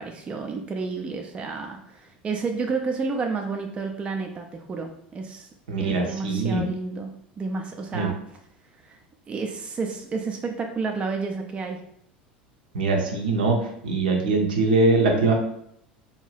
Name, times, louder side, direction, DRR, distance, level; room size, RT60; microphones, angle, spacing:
voice 1, 0.0-5.5 5.8-8.2 8.8-9.0 9.3-11.8, right 4 dB, 20° right, 3 dB, 0.3 m, -31 dB
voice 2, 5.7-6.7 7.9-8.1 12.7-13.6 13.8-15.3, right 3 dB, 65° right, 2 dB, 0.6 m, -22 dB
2.5 x 2.2 x 3.2 m, 0.72 s
figure-of-eight pair, 75°, 5 cm